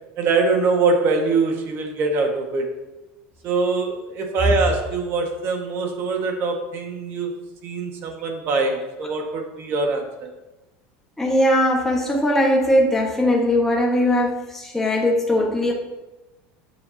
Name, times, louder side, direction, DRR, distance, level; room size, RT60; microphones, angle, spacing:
voice 1, 0.2-2.7 3.4-7.3 7.6-10.3, right 3 dB, 50° right, 3 dB, 1.9 m, -23 dB
voice 2, 11.2-15.7, left 1 dB, 5° left, -2 dB, 1.6 m, -19 dB
13.0 x 8.0 x 2.9 m, 1.1 s
supercardioid pair, 130°, 5 cm